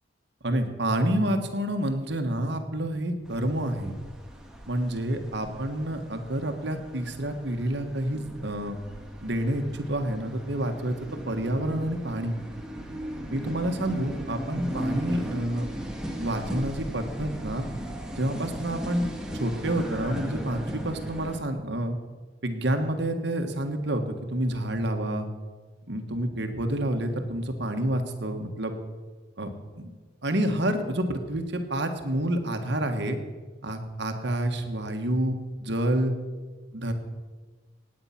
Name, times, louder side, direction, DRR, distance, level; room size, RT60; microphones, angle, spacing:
voice 1, 0.4-3.9 4.7-8.8 9.2-12.3 13.3-15.6 16.2-17.7 18.2-19.1 19.3-22.0 22.4-24.0 24.3-25.3 25.9-28.7 29.4-29.5 29.8-29.9 30.2-33.2 33.6-35.3 35.6-36.1 36.7-36.9, right 1 dB, 65° right, 6 dB, 1.6 m, -28 dB
sound 1, 3.2-21.4, equal, 5° right, 1.7 m, -37 dB
18.5 x 8.9 x 5.9 m, 1.4 s
head